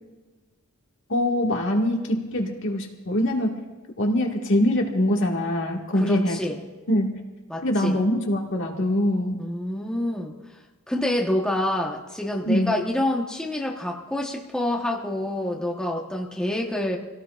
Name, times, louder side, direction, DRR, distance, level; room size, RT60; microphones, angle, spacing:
voice 1, 1.1-3.6 4.0-6.4 6.9-7.2 7.6-9.4 12.5-12.7, left 1 dB, 55° left, 1 dB, 1.9 m, -23 dB
voice 2, 5.9-6.6 7.5-8.0 9.4-10.3 10.9-17.0, left 1 dB, 5° left, -2 dB, 1.2 m, -27 dB
26.5 x 17.5 x 2.5 m, 1.2 s
head